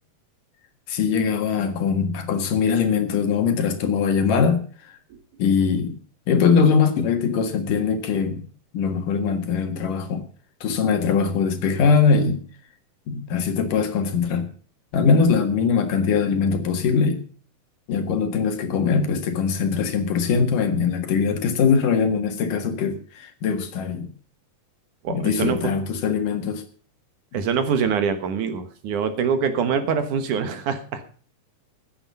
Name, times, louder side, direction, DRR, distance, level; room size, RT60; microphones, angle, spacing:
voice 1, 0.9-4.6 5.4-6.0 6.3-8.4 8.7-10.2 10.6-12.4 13.1-14.4 14.9-17.2 17.9-24.1 25.1-26.6, left 5 dB, 70° left, 3.2 m, -21 dB
voice 2, 25.0-25.6 27.3-31.0, right 6 dB, 65° right, 2.7 m, -24 dB
15.0 x 10.0 x 5.5 m
omnidirectional pair, 4.0 m